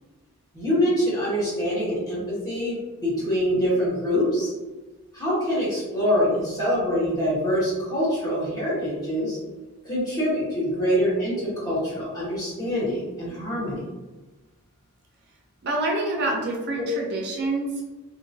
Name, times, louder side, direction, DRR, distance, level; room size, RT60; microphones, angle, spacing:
voice 1, 0.5-4.5 5.1-9.4 9.8-13.8, equal, 15° left, -8 dB, 1.1 m, -25 dB
voice 2, 15.6-17.9, right 2 dB, 45° right, -1 dB, 0.4 m, -27 dB
2.8 x 2.5 x 2.6 m, 1.2 s
head